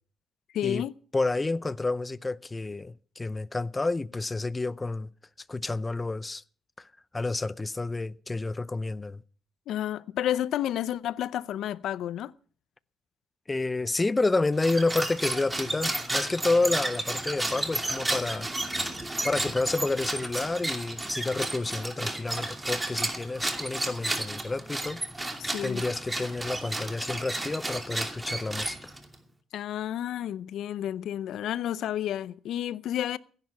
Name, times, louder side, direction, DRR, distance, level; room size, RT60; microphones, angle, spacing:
voice 1, 0.5-0.9 9.7-12.3 25.4-25.8 29.5-33.2, left 11 dB, 75° left, 0.6 m, -31 dB
voice 2, 1.1-5.1 5.5-6.4 6.8-6.9 7.1-9.2 13.5-18.5 18.8-19.0 19.2-25.0 25.6-28.9, left 3 dB, 20° left, 0.6 m, -29 dB
sound 1, 14.5-29.2, right 2 dB, 15° right, 2.6 m, -32 dB
16.0 x 10.5 x 5.9 m
cardioid pair, 90°, 0 cm